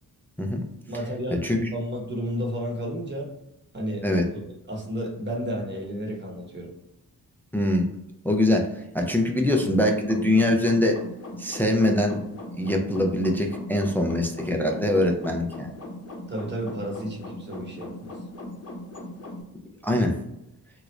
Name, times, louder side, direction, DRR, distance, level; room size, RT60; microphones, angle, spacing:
voice 1, 0.9-3.3 3.7-4.0 4.3-6.7 16.3-18.1, equal, 30° right, -1 dB, 1.0 m, -32 dB
voice 2, 7.5-7.9 8.2-11.0 11.4-12.2 12.6-15.7 19.8-20.2, left 1 dB, 5° left, 2 dB, 0.3 m, -23 dB
sound 1, 9.4-19.4, left 1 dB, 40° left, 0.8 m, -39 dB
3.0 x 2.5 x 3.1 m, 0.88 s
wide cardioid pair, 120°, 38 cm